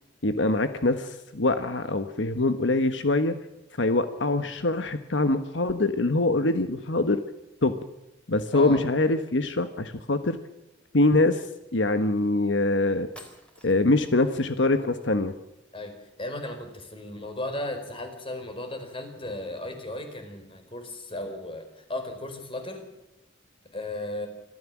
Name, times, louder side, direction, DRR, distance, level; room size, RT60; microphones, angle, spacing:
voice 1, 0.2-3.3 3.7-7.2 7.6-7.7 8.3-10.4 10.9-13.1 13.6-15.3, left 2 dB, 80° left, 9 dB, 1.3 m, -24 dB
voice 2, 8.5-8.8 15.7-22.8 23.7-24.3, left 1 dB, 30° left, 6 dB, 4.5 m, -35 dB
sound 1, 13.1-14.1, left 1 dB, 5° left, 4.1 m, -49 dB
25.5 x 14.0 x 7.4 m, 0.95 s
head